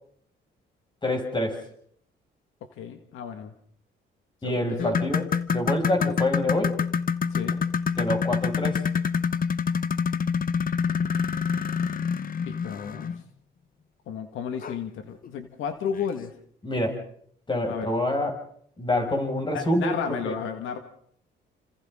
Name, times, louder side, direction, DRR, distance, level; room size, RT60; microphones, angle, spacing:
voice 1, 1.0-1.6 4.4-6.7 8.0-8.9 16.6-17.0 17.5-18.3 18.8-20.4, left 1 dB, 25° left, 2 dB, 6.3 m, -26 dB
voice 2, 2.8-3.5 4.4-5.0 6.0-6.2 7.3-7.6 12.5-13.1 14.1-16.3 17.7-17.9 19.5-20.8, left 7 dB, 85° left, 6 dB, 1.9 m, -33 dB
sound 1, 4.8-13.2 14.6-14.8 15.2-15.3 16.0-16.1, left 6 dB, 45° left, 1.0 m, -26 dB
29.5 x 26.5 x 3.8 m, 0.65 s
cardioid pair, 90°, 20 cm